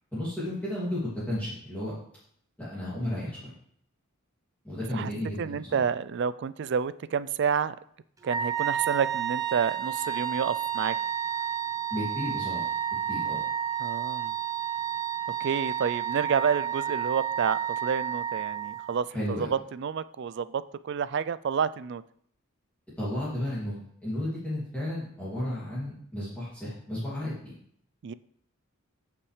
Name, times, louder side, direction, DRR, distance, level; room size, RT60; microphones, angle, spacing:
voice 1, 0.1-1.9 2.6-3.5 4.6-5.8 11.9-12.7 13.1-13.4 19.1-19.5 23.0-27.5, left 1 dB, 5° left, -10 dB, 2.4 m, -33 dB
voice 2, 5.4-7.8 8.2-11.0 13.8-14.3 15.4-22.0 28.0-28.1, right 7 dB, 55° right, 16 dB, 0.3 m, -29 dB
Wind instrument woodwind instrument, 8.2-19.0, right 9 dB, 15° right, 0.6 m, -31 dB
15.0 x 5.9 x 3.3 m, 0.66 s
head